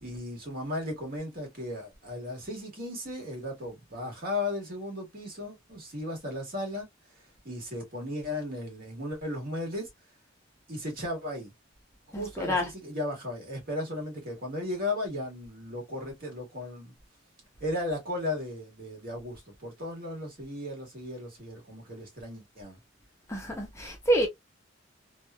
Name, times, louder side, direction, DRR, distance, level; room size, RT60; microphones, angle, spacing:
voice 1, 0.0-6.9 7.4-9.9 10.7-11.5 12.1-16.9 17.6-22.8, left 1 dB, 45° right, 1.4 m, -35 dB
voice 2, 12.1-12.7 23.3-24.3, equal, 15° left, 0.6 m, -28 dB
2.9 x 2.3 x 2.2 m
head